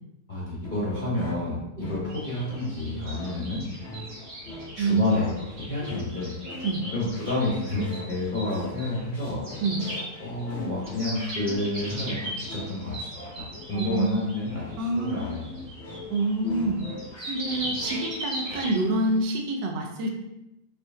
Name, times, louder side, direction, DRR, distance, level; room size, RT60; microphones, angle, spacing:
voice 1, 0.3-3.6 4.7-6.3 6.9-9.4 10.2-15.4, left 2 dB, 40° left, -7 dB, 0.7 m, -30 dB
sound 1, 0.6-18.7, left 2 dB, 90° left, 0.6 m, -41 dB
sound 2, 2.1-19.2, equal, 30° right, 0.9 m, -39 dB
voice 2, 13.7-14.2 14.8-15.4 16.1-16.8 17.3-20.2, right 2 dB, 80° right, 2 dB, 1.2 m, -27 dB
4.5 x 2.5 x 2.6 m, 0.90 s
omnidirectional pair, 1.9 m